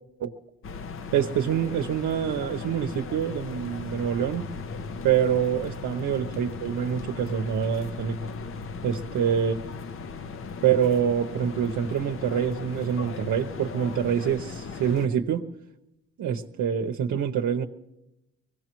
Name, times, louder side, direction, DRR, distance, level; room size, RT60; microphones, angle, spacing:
sound 1, 0.6-15.1, left 4 dB, 45° left, 0.7 m, -38 dB
voice 1, 1.1-4.5 5.0-8.2 8.8-9.6 10.6-15.5 16.2-17.6, right 8 dB, 75° right, 3 dB, 0.9 m, -26 dB
23.5 x 17.5 x 3.0 m, 0.90 s
cardioid pair, 90°, 30 cm